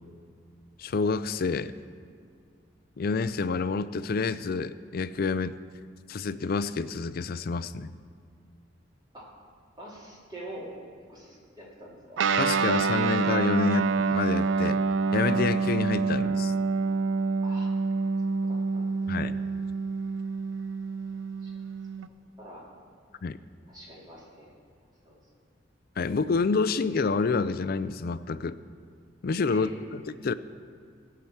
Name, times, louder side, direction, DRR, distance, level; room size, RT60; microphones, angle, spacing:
voice 1, 0.8-1.7 3.0-5.6 6.1-7.9 12.4-14.8 15.1-16.5 19.1-19.4 23.2-23.4 26.0-28.6 29.2-30.3, left 4 dB, 50° left, 14 dB, 0.4 m, -28 dB
voice 2, 9.8-10.7 11.1-12.2 17.4-17.7 18.3-18.9 21.4-21.5 22.4-22.6 23.7-24.5 25.0-25.2 29.5-30.0, right 1 dB, 25° right, -5 dB, 3.0 m, -45 dB
Guitar, 12.2-22.1, right 4 dB, 80° right, 0.5 m, -27 dB
17.0 x 5.8 x 7.1 m, 2.2 s
head